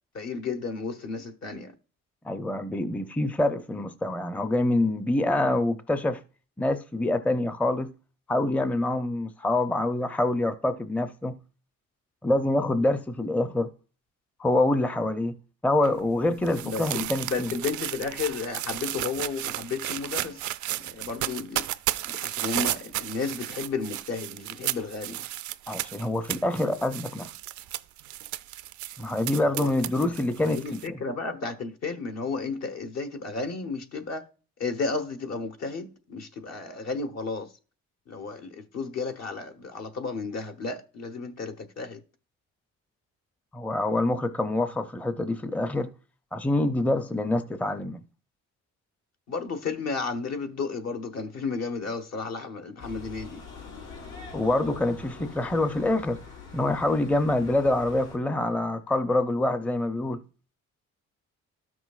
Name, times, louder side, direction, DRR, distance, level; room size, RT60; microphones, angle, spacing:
voice 1, 0.1-1.7 16.6-21.7 22.0-25.2 29.4-29.7 30.0-30.1 30.4-34.3 34.6-37.5 38.1-42.0 49.3-53.4, left 4 dB, 60° left, 1.1 m, -33 dB
voice 2, 2.2-6.2 6.6-7.9 8.3-11.4 12.2-13.7 14.4-15.4 15.6-17.5 25.7-27.3 29.0-31.0 43.5-45.9 46.3-48.0 54.3-56.2 56.5-60.2, left 2 dB, 5° left, 0.5 m, -26 dB
sound 1, 15.8-30.9, right 14 dB, 75° right, 0.4 m, -34 dB
sound 2, 52.8-58.2, left 4 dB, 85° left, 3.8 m, -44 dB
12.5 x 6.1 x 2.4 m
cardioid pair, 90°, 30 cm